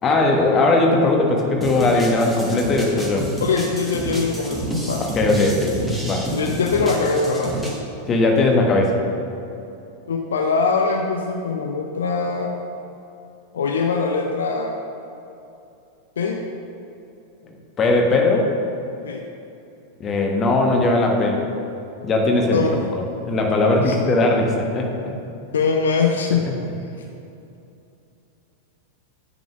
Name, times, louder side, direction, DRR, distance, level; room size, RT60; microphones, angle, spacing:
voice 1, 0.0-3.3 5.0-5.7 6.1-6.3 8.1-9.0 17.8-18.5 20.0-21.4 22.0-22.6 22.9-24.9 26.3-26.4, left 2 dB, 25° left, 1 dB, 1.2 m, -19 dB
sound 1, 1.6-7.8, equal, ahead, 1.2 m, -29 dB
voice 2, 3.4-5.0 6.3-7.6 10.1-12.5 13.5-14.8 16.2-16.4 19.0-19.2 22.5-22.8 23.8-24.0 25.5-26.4, left 4 dB, 65° left, 2 dB, 0.6 m, -22 dB
9.1 x 4.0 x 6.0 m, 2.8 s
figure-of-eight pair, 90°, 0 cm